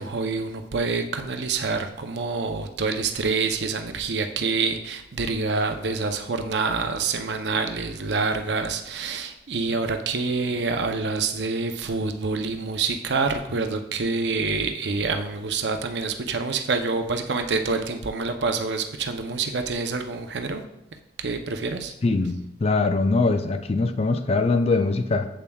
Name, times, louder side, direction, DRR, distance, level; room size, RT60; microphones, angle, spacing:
voice 1, 0.0-20.6 21.2-21.9, right 4 dB, 70° right, 6 dB, 0.6 m, -27 dB
voice 2, 22.0-25.3, left 3 dB, 35° left, 8 dB, 0.4 m, -22 dB
7.5 x 6.9 x 2.3 m, 0.86 s
head